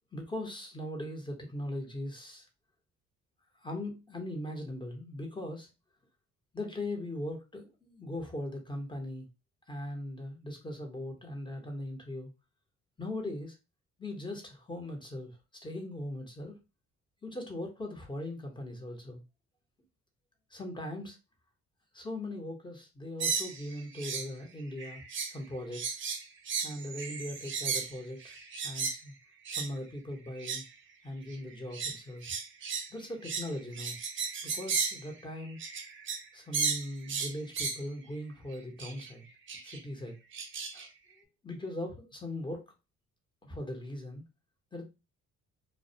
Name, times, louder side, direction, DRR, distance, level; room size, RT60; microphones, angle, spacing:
voice 1, 0.1-2.5 3.6-5.7 6.5-9.3 9.7-12.3 13.0-13.6 14.0-15.4 15.6-16.5 17.2-19.2 20.5-21.2 21.9-25.0 25.3-26.0 26.6-28.3 28.6-29.1 29.5-30.6 31.0-32.2 32.9-34.0 34.4-35.6 36.3-39.2 39.6-40.2 40.7-40.9 41.4-42.7 43.4-44.2 44.7-44.8, left 1 dB, 15° left, 2 dB, 0.8 m, -39 dB
sound 1, 23.2-24.3 24.6-25.4 25.7-29.0 29.4-29.7 30.3-30.7 31.3-36.3 36.5-37.8 38.8-39.1 39.5-39.8 40.3-40.9, right 5 dB, 40° right, 0.6 m, -35 dB
2.2 x 2.1 x 2.7 m, 0.27 s
cardioid pair, 90°, 30 cm